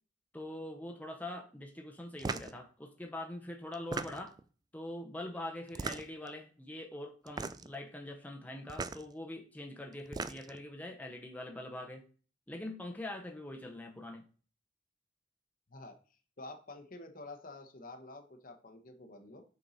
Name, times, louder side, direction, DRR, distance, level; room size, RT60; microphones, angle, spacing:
voice 1, 0.3-4.4 4.7-12.0 12.5-14.2, left 1 dB, 10° left, 2 dB, 0.8 m, -43 dB
sound 1, 2.2-2.6 3.7-4.4 5.7-6.3 7.3-7.8 8.7-9.0 9.9-10.6, right 4 dB, 20° right, 0.3 m, -38 dB
voice 2, 16.4-19.4, left 2 dB, 50° left, 6 dB, 1.0 m, -49 dB
6.7 x 4.5 x 4.1 m, 0.39 s
head